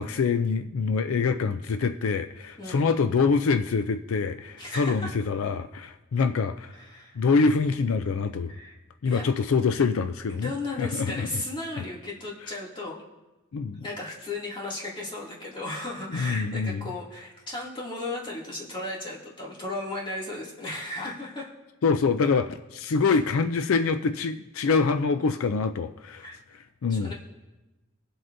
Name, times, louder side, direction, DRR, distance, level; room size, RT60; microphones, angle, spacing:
voice 1, 0.0-6.7 7.2-8.5 9.0-10.5 10.8-11.4 13.5-13.8 16.1-16.9 21.8-26.3 26.5-27.1, left 4 dB, 75° left, 9 dB, 0.4 m, -25 dB
voice 2, 2.6-2.9 4.6-5.1 6.7-7.2 8.5-8.8 9.0-9.2 10.4-13.0 13.8-21.5 23.0-23.2 26.2-26.4 26.9-27.1, left 2 dB, 25° left, -5 dB, 2.4 m, -35 dB
22.5 x 7.7 x 2.6 m, 1.1 s
head